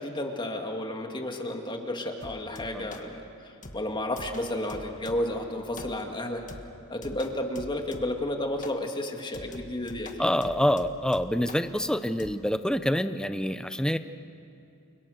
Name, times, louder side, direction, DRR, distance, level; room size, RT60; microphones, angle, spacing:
voice 1, 0.0-3.3 3.7-6.5 6.9-10.1, left 1 dB, 20° left, 3 dB, 2.3 m, -32 dB
sound 1, 2.2-3.1 3.6-5.4 5.8-6.2 6.5-8.3 8.6-8.9 9.3-11.7 12.2-12.3, left 2 dB, 35° left, 1.6 m, -45 dB
voice 2, 10.2-14.0, equal, 5° left, 10 dB, 0.8 m, -26 dB
29.5 x 29.5 x 6.6 m, 2.6 s
head